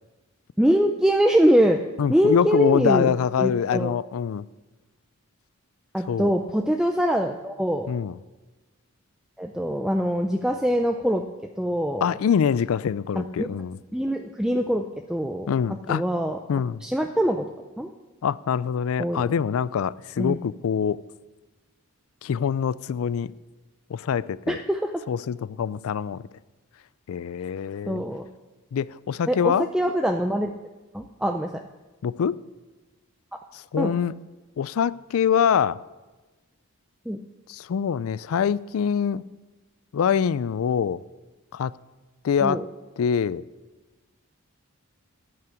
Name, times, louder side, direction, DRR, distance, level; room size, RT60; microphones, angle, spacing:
voice 1, 0.6-1.8 2.1-3.1 3.4-3.9 5.9-7.9 9.4-11.2 11.6-12.1 13.2-13.5 13.9-14.8 15.1-15.5 15.9-16.4 16.8-17.5 17.8-17.9 19.0-19.3 20.2-20.4 24.5-24.9 27.9-28.3 29.3-30.5 30.9-31.5 33.8-33.9 37.1-37.2 42.4-42.6, equal, 5° right, 0.4 m, -23 dB
voice 2, 2.0-4.4 6.1-6.3 7.9-8.2 12.0-13.8 15.5-16.0 16.5-16.8 18.2-21.0 22.2-23.3 23.9-24.6 25.1-26.2 27.1-28.0 28.7-29.7 32.0-32.4 33.5-34.1 34.6-35.8 37.5-39.2 39.9-41.0 41.5-41.7 42.2-42.6 43.0-43.4, left 7 dB, 70° left, 0.3 m, -24 dB
12.5 x 5.8 x 8.3 m
head